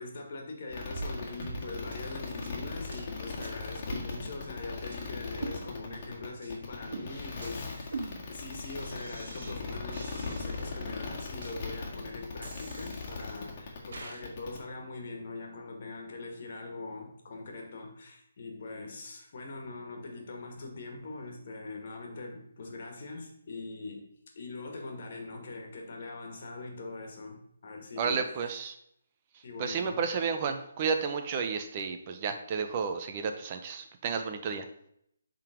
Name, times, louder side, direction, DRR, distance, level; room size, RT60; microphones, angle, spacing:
voice 1, 0.0-24.1 24.4-28.2 29.4-30.0, left 3 dB, 55° left, 2 dB, 1.7 m, -42 dB
sound 1, 0.7-14.6, left 4 dB, 35° left, 1.8 m, -39 dB
sound 2, 0.9-1.1 1.4-1.6 1.9-2.0 2.4-2.5 2.9-3.1 3.4-3.5 3.9-4.6 4.9-5.0 5.4-6.0 6.4-6.6 6.9-9.6 9.9-10.8 11.4-11.5 12.4-13.4 13.9-14.2, right 3 dB, 60° right, 1.5 m, -43 dB
voice 2, 28.0-28.8 29.3-34.7, right 5 dB, 30° right, 6 dB, 0.6 m, -32 dB
7.3 x 3.9 x 5.1 m, 0.73 s
hypercardioid pair, 155°, 0 cm